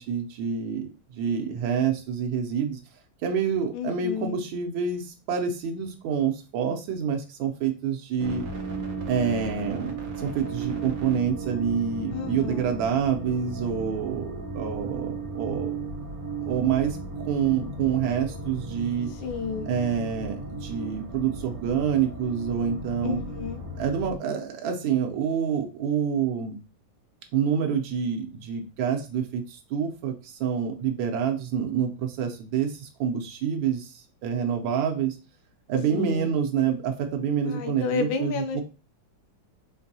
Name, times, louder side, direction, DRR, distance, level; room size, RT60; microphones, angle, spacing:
voice 1, 0.0-2.8 3.2-8.4 9.1-15.8 16.4-19.1 19.7-23.2 23.8-26.6 27.3-35.2 35.7-38.6, right 7 dB, 85° right, 3 dB, 1.4 m, -27 dB
voice 2, 3.7-4.4 12.1-12.7 19.2-19.7 23.0-23.6 35.9-36.4 37.4-38.6, left 5 dB, 85° left, 7 dB, 1.4 m, -31 dB
sound 1, 8.2-24.2, right 3 dB, 55° right, 1.2 m, -35 dB
4.7 x 2.6 x 2.6 m, 0.33 s
omnidirectional pair, 2.1 m